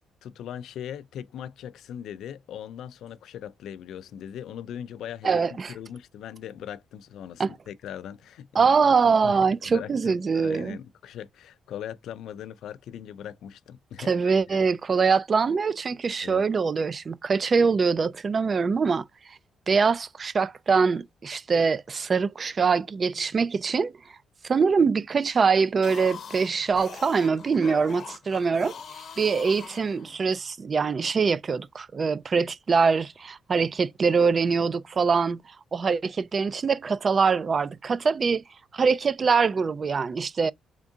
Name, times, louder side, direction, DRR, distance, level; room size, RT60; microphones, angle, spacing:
voice 1, 0.2-8.7 9.0-14.7 16.2-16.5, left 9 dB, 75° left, 0.3 m, -40 dB
voice 2, 5.2-5.7 7.4-7.5 8.6-10.8 14.1-19.0 19.7-23.9 24.4-28.7 29.2-35.4 35.7-38.4 38.7-40.5, right 5 dB, 40° right, 0.3 m, -23 dB
sound 1, 25.7-30.4, left 7 dB, 55° left, 0.7 m, -42 dB
3.6 x 3.5 x 2.6 m
cardioid pair, 90°, 0 cm